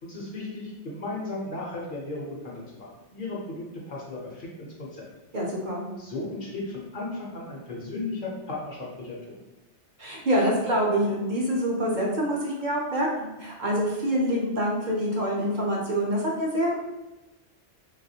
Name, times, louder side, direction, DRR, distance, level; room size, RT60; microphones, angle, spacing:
voice 1, 0.0-5.0 6.0-9.4, left 2 dB, 55° left, -3 dB, 0.7 m, -35 dB
voice 2, 5.3-5.8 10.0-16.7, equal, 55° right, -3 dB, 0.6 m, -26 dB
3.3 x 2.3 x 2.7 m, 1.0 s
omnidirectional pair, 1.2 m